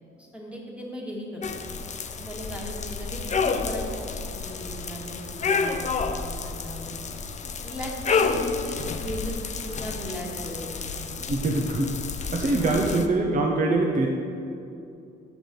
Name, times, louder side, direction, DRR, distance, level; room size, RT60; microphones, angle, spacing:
voice 1, 0.2-1.8 2.2-7.2 7.6-11.3 12.6-13.0, equal, 5° right, -2 dB, 1.7 m, -38 dB
sound 1, 1.4-13.1, left 5 dB, 35° left, 0.5 m, -30 dB
voice 2, 11.3-11.9 12.3-14.1, right 2 dB, 40° right, 0 dB, 0.9 m, -23 dB
7.2 x 5.9 x 5.2 m, 2.6 s
cardioid pair, 90°, 20 cm